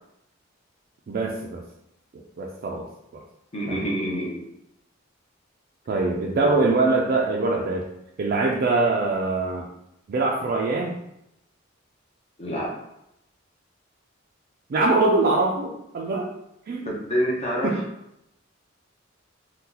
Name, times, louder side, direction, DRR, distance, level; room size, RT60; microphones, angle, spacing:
voice 1, 1.1-1.6 2.4-2.9 3.7-3.9 5.9-7.8 8.2-9.6 10.1-11.0 14.7-16.3 16.7-16.9 17.6-17.8, right 3 dB, 50° right, 0 dB, 0.3 m, -23 dB
voice 2, 3.5-4.4 6.4-6.8 12.4-12.7 16.9-17.8, equal, 35° left, -3 dB, 0.6 m, -27 dB
2.8 x 2.1 x 3.7 m, 0.83 s
head